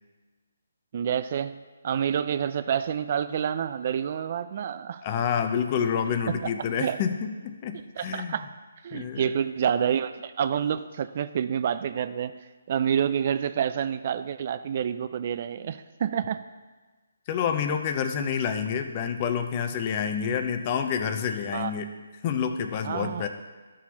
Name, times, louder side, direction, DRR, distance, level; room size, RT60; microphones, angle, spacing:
voice 1, 0.9-5.0 6.3-6.5 6.8-7.0 8.0-8.5 8.8-12.3 12.7-16.4 21.5-21.9 22.8-23.3, right 8 dB, 45° right, 12 dB, 0.3 m, -28 dB
voice 2, 5.0-8.3 8.9-9.3 17.3-21.9 22.2-23.3, left 7 dB, 30° left, 7 dB, 0.6 m, -28 dB
12.5 x 6.2 x 2.9 m, 1.3 s
hypercardioid pair, 155°, 0 cm